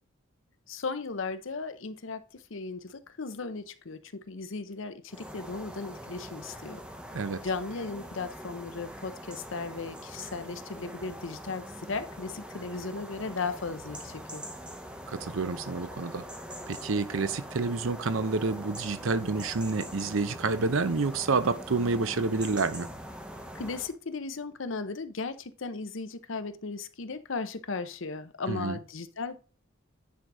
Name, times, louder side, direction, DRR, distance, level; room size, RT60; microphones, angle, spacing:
voice 1, 0.7-6.8 7.4-14.4 23.5-29.4, left 4 dB, 65° left, 0.7 m, -36 dB
sound 1, 5.1-23.9, equal, 5° right, 0.8 m, -43 dB
voice 2, 15.1-16.2 16.7-22.9 28.5-28.8, right 4 dB, 70° right, 0.7 m, -29 dB
9.5 x 4.1 x 4.7 m
head